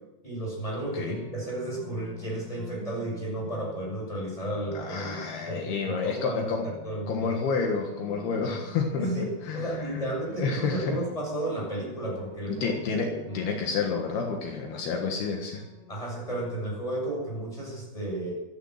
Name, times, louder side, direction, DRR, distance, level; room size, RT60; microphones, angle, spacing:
voice 1, 0.2-5.2 5.5-7.3 9.0-9.3 9.5-12.7 13.0-13.4 15.9-18.3, right 1 dB, 10° left, -2 dB, 7.5 m, -33 dB
sound 1, 0.7-16.9, left 3 dB, 25° left, 7.8 m, -47 dB
voice 2, 4.8-6.7 7.1-10.1 10.4-11.0 12.5-15.7, left 5 dB, 75° left, 2 dB, 3.5 m, -30 dB
14.5 x 13.5 x 6.6 m, 0.99 s
omnidirectional pair, 4.7 m